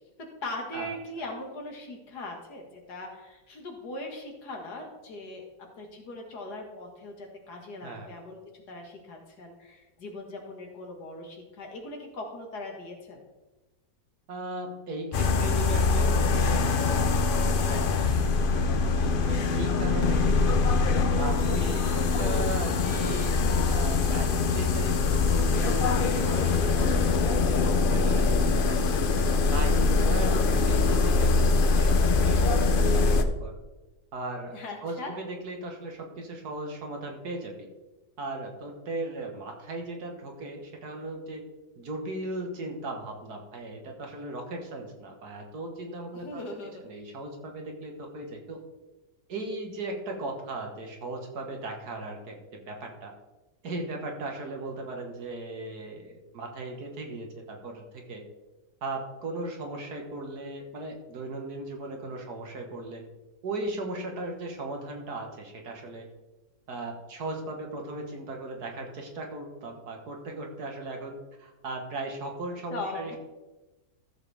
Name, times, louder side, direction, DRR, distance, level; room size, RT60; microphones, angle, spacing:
voice 1, 0.4-5.4 5.7-13.2 34.5-35.1 46.1-46.8 72.7-73.2, left 2 dB, 65° left, 1 dB, 2.3 m, -40 dB
voice 2, 14.3-20.6 21.2-23.4 23.7-29.0 29.5-33.5 34.1-37.7 38.2-41.4 41.8-46.4 46.8-48.6 49.3-52.4 52.7-53.1 53.6-58.2 58.8-63.0 63.4-66.1 66.7-73.2, right 2 dB, 65° right, 2 dB, 2.0 m, -37 dB
sound 1, 15.1-33.2, left 4 dB, 85° left, 0.4 m, -23 dB
14.0 x 7.2 x 3.4 m, 1.1 s
omnidirectional pair, 1.9 m